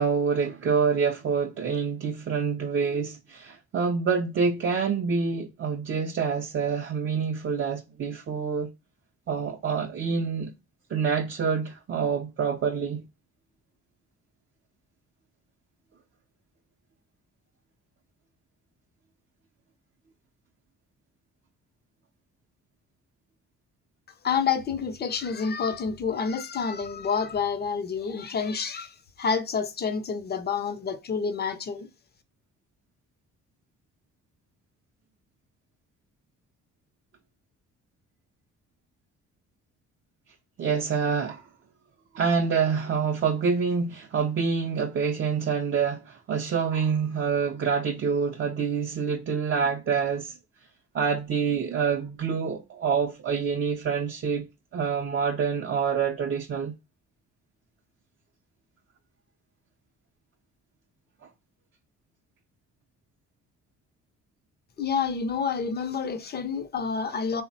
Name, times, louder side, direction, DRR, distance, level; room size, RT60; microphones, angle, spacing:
voice 1, 0.0-8.7 9.3-10.5 10.9-13.0 40.6-41.4 42.1-50.4 50.9-54.5 54.7-56.7, right 6 dB, 40° right, 0.5 m, -26 dB
voice 2, 24.2-31.9 64.8-67.4, left 6 dB, 35° left, 0.5 m, -28 dB
3.4 x 2.1 x 2.6 m
cardioid pair, 90°, 30 cm